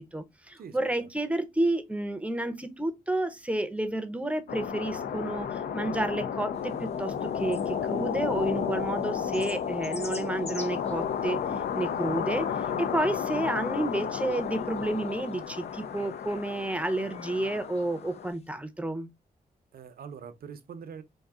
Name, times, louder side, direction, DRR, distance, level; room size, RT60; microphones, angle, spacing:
voice 1, 0.0-11.4 11.7-12.5 12.8-19.1, right 1 dB, 10° right, 0.6 m, -30 dB
voice 2, 0.6-1.1 19.7-21.0, right 6 dB, 75° right, 0.6 m, -44 dB
sound 1, 4.5-18.3, left 7 dB, 75° left, 0.4 m, -32 dB
sound 2, 6.5-18.5, left 3 dB, 40° left, 0.7 m, -50 dB
3.7 x 2.6 x 3.5 m
cardioid pair, 95°, 16 cm